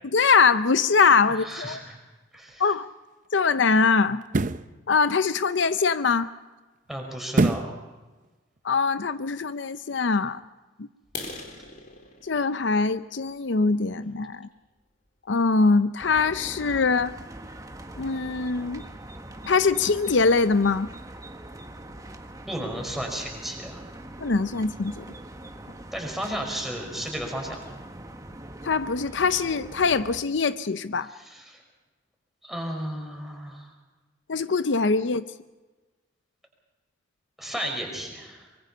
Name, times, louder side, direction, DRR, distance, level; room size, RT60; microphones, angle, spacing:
voice 1, 0.1-1.8 2.6-2.9 3.3-4.2 4.9-6.3 8.6-10.4 10.8-10.9 12.2-14.5 15.3-17.1 18.0-18.8 19.4-20.9 24.2-25.0 28.6-31.1 34.3-35.3, left 4 dB, 70° left, 13 dB, 0.6 m, -22 dB
voice 2, 1.3-2.0 2.3-2.6 6.9-7.7 22.5-23.8 25.9-27.6 31.1-31.6 32.4-33.7 37.4-38.5, equal, ahead, 1 dB, 5.3 m, -33 dB
sound 1, 2.3-2.5 4.2-4.7 7.3-7.8 8.2-8.3, right 2 dB, 45° right, 0.7 m, -23 dB
sound 2, 11.0-14.8 15.3-15.5 16.0-16.1 16.5-16.7 17.0-17.1 17.5-17.6 17.8-18.3, left 3 dB, 45° left, 3.9 m, -43 dB
sound 3, 16.0-30.2, right 1 dB, 20° right, 1.5 m, -42 dB
24.5 x 23.0 x 5.5 m, 1.2 s
head